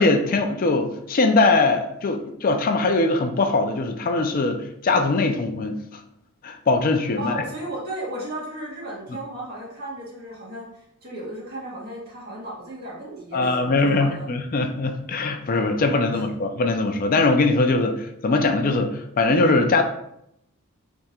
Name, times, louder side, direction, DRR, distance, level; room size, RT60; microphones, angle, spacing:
voice 1, 0.0-5.8 6.4-7.3 13.3-19.8, left 3 dB, 40° left, 5 dB, 0.4 m, -21 dB
voice 2, 7.2-14.3 16.1-16.2, right 1 dB, 45° right, -6 dB, 1.7 m, -35 dB
3.5 x 2.8 x 4.2 m, 0.76 s
head